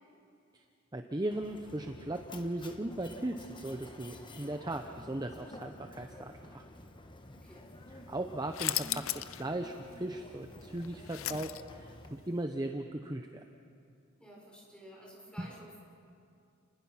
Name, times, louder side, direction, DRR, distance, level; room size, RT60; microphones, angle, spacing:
voice 1, 0.9-6.6 8.1-13.4 15.4-15.5, right 1 dB, 20° right, 5 dB, 0.8 m, -37 dB
Mechanisms, 1.3-12.1, left 1 dB, 20° left, 1.2 m, -51 dB
voice 2, 7.3-7.7 14.2-15.8, equal, 5° left, -4 dB, 5.4 m, -52 dB
sound 1, 8.5-9.4 9.8-9.9 10.6-11.9, left 14 dB, 70° left, 0.6 m, -35 dB
30.0 x 20.0 x 5.8 m, 2.5 s
head